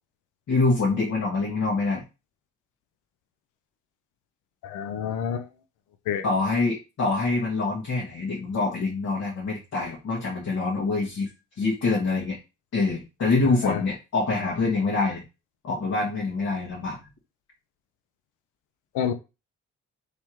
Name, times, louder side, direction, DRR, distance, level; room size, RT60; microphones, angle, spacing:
voice 1, 0.5-2.0 6.2-11.3 11.6-12.4 12.7-15.2 15.6-17.0, left 3 dB, 60° left, 1.7 m, -25 dB
voice 2, 4.6-5.5 6.1-6.2 13.6-13.8 18.9-19.1, left 8 dB, 90° left, 0.7 m, -28 dB
3.5 x 3.3 x 4.5 m
cardioid pair, 90°, 30 cm